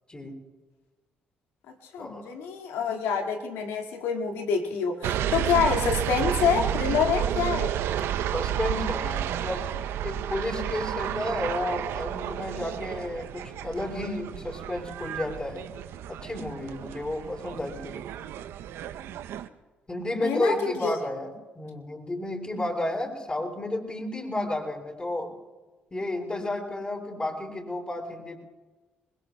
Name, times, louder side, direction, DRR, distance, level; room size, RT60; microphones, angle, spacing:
voice 1, 1.9-7.8 20.1-20.9, left 6 dB, 80° left, 3 dB, 2.0 m, -27 dB
sound 1, 5.0-19.5, right 11 dB, 75° right, 0.6 m, -31 dB
voice 2, 8.3-9.7 10.0-15.6 16.1-18.0 19.9-25.3 25.9-28.4, left 1 dB, 25° left, -3 dB, 7.1 m, -32 dB
28.0 x 21.5 x 2.3 m, 1.2 s
hypercardioid pair, 50°, 4 cm